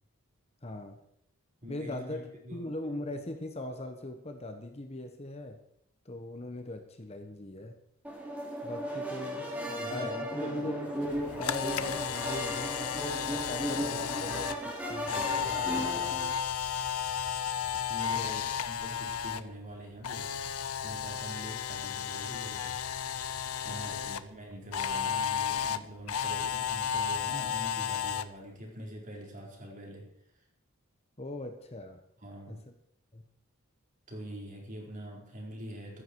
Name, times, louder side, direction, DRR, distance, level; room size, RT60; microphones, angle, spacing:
voice 1, 0.6-1.0 1.7-5.6 6.0-7.8 8.6-9.5 9.9-10.9 11.4-12.9 13.3-16.2 18.1-18.4 23.6-24.0 31.2-32.0 32.5-32.7 33.1-33.2, left 2 dB, 30° left, 6 dB, 1.2 m, -40 dB
voice 2, 1.6-2.6 9.3-10.7 17.9-20.3 20.8-22.8 23.6-30.1 32.2-32.6 34.1-36.0, equal, 35° right, -1 dB, 4.3 m, -44 dB
sound 1, 8.0-16.3, equal, 5° right, 3.7 m, -36 dB
Camera, 11.1-19.4 19.7-24.2 24.7-28.2, left 8 dB, 85° left, 0.8 m, -33 dB
15.0 x 13.5 x 4.7 m, 0.71 s
head